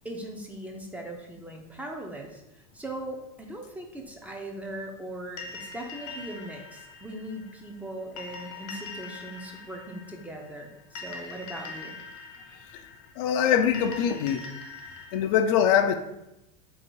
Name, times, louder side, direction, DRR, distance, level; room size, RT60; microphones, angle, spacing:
voice 1, 0.0-12.0, right 1 dB, 10° right, 1 dB, 0.4 m, -39 dB
sound 1, 5.4-15.2, left 4 dB, 75° left, 1.0 m, -43 dB
voice 2, 13.2-14.5 15.1-16.0, left 8 dB, 60° left, 8 dB, 0.4 m, -23 dB
3.0 x 2.8 x 4.4 m, 0.89 s
supercardioid pair, 135°, 19 cm